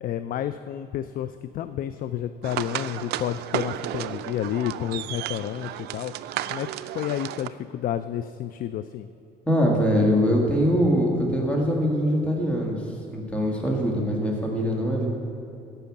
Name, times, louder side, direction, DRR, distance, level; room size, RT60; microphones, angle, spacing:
voice 1, 0.0-6.1 6.5-9.1, left 11 dB, 55° left, 12 dB, 0.4 m, -30 dB
sound 1, 2.4-7.5, right 13 dB, 75° right, 0.4 m, -33 dB
voice 2, 9.5-12.8 13.1-15.1, equal, 5° left, -1 dB, 1.8 m, -23 dB
13.5 x 5.6 x 7.1 m, 2.8 s
cardioid pair, 110°, 17 cm